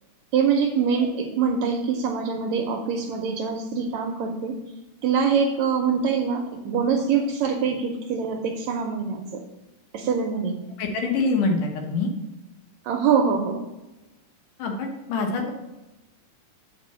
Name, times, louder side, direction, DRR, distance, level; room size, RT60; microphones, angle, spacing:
voice 1, 0.3-4.5 5.0-9.4 9.9-10.6 12.9-13.6, right 6 dB, 75° right, 3 dB, 1.8 m, -24 dB
voice 2, 10.8-12.1 14.6-15.5, left 3 dB, 75° left, 2 dB, 2.7 m, -25 dB
6.3 x 5.2 x 6.8 m, 1.0 s
omnidirectional pair, 3.8 m